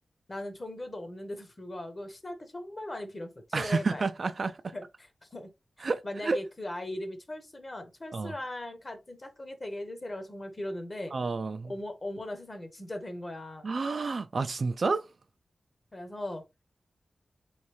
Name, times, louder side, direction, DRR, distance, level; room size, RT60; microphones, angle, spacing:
voice 1, 0.3-4.1 4.7-4.9 5.2-5.5 5.8-11.1 11.6-13.7 15.9-16.5, left 1 dB, 30° left, 0.8 m, -39 dB
voice 2, 3.5-4.7 5.8-6.4 8.1-8.3 11.1-11.7 13.6-15.1, right 4 dB, 55° right, 0.3 m, -30 dB
3.6 x 3.2 x 3.0 m
wide cardioid pair, 135°, 0 cm